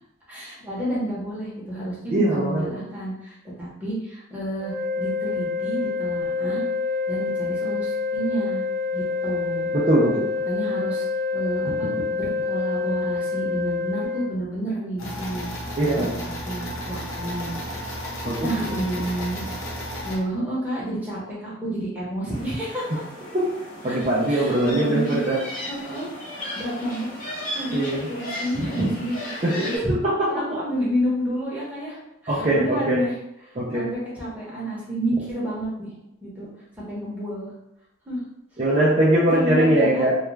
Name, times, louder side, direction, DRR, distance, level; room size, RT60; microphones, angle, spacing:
voice 1, 0.3-6.6 7.1-8.6 8.9-9.7 10.5-11.1 11.3-15.5 15.9-17.5 18.4-19.5 19.7-22.9 23.9-29.9 30.3-33.2 33.4-35.9 36.2-36.5 36.7-37.5 38.1-38.2 39.3-40.1, right 1 dB, 10° right, -8 dB, 0.8 m, -30 dB
voice 2, 2.1-2.8 9.7-10.2 11.7-11.8 15.8-16.2 18.2-18.5 23.3-23.5 23.8-25.4 27.7-28.1 28.5-28.9 29.4-30.3 32.3-33.0 33.6-33.9 38.6-40.2, right 1 dB, 30° right, -7 dB, 0.4 m, -21 dB
sound 1, 4.6-14.3, left 4 dB, 70° right, 0.6 m, -27 dB
sound 2, 15.0-20.2, equal, 85° left, 0.8 m, -33 dB
sound 3, 22.3-29.8, left 1 dB, 40° left, 0.9 m, -36 dB
2.3 x 2.2 x 3.1 m, 0.88 s
head